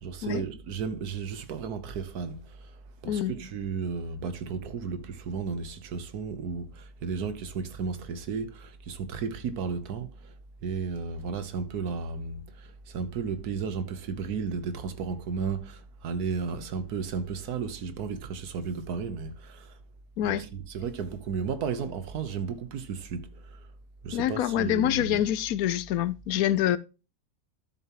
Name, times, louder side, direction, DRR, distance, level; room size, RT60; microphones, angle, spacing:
voice 1, 0.0-2.7 3.0-10.3 10.6-19.7 20.2-23.6 24.0-25.3, right 5 dB, 85° right, 1.5 m, -34 dB
voice 2, 24.1-26.8, left 12 dB, 75° left, 1.1 m, -26 dB
12.5 x 7.1 x 2.9 m
omnidirectional pair, 1.6 m